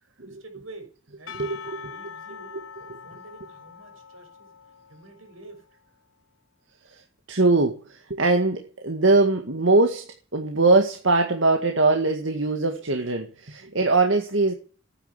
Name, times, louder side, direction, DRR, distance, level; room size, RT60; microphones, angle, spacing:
voice 1, 0.2-0.9 1.2-4.5 4.9-5.6, right 2 dB, 85° right, 4 dB, 6.3 m, -47 dB
Percussion / Church bell, 1.3-5.7, left 7 dB, 70° left, 1.3 m, -43 dB
voice 2, 6.9-10.1 10.3-14.6, right 3 dB, 65° right, 4 dB, 2.0 m, -21 dB
13.0 x 10.0 x 8.3 m, 0.38 s
head